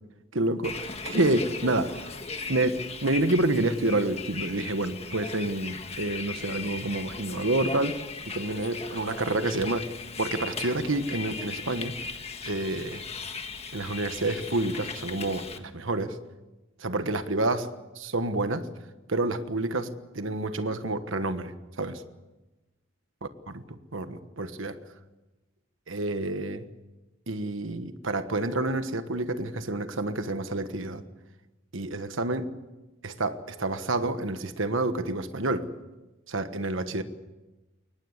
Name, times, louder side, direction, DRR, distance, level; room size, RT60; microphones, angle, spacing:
voice 1, 0.3-2.1 2.5-8.0 8.3-9.9 10.2-12.0 12.4-13.0 13.7-16.2 16.8-17.7 18.0-18.7 19.1-22.0 23.7-24.8 25.9-26.6 27.3-31.0 31.7-32.5 33.0-35.7 36.3-37.0, right 2 dB, 65° right, 10 dB, 1.4 m, -28 dB
Bus, 0.6-15.6, left 4 dB, 30° left, 1.5 m, -38 dB
23.0 x 19.5 x 8.1 m, 1.1 s
head